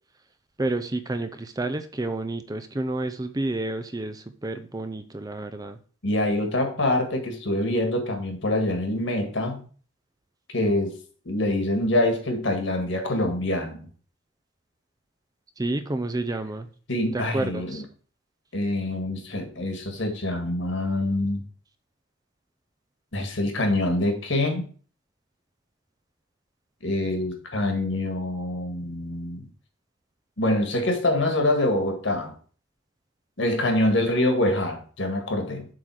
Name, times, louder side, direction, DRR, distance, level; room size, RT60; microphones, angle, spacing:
voice 1, 0.6-5.8 15.6-16.7 17.1-17.8, right 2 dB, 20° right, 9 dB, 0.5 m, -30 dB
voice 2, 6.0-9.6 10.5-10.9 11.3-13.8 16.9-17.8 18.5-21.4 23.1-24.6 26.8-29.5 30.4-32.3 33.4-35.7, left 1 dB, 65° left, 4 dB, 1.9 m, -25 dB
7.6 x 3.8 x 6.2 m, 0.41 s
head